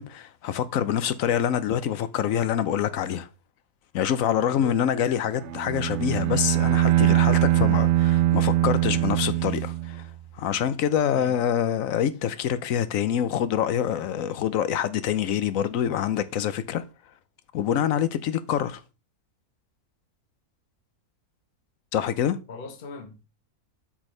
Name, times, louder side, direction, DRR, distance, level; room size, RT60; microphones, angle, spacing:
voice 1, 0.0-3.3 3.9-16.8 17.5-18.8 21.9-22.4, left 9 dB, 65° left, 1.1 m, -26 dB
voice 2, 4.4-4.8 11.1-11.3 22.5-23.3, left 4 dB, 40° left, 1.4 m, -40 dB
Bowed string instrument, 5.4-10.2, right 14 dB, 65° right, 0.7 m, -22 dB
8.0 x 6.3 x 3.2 m
omnidirectional pair, 1.6 m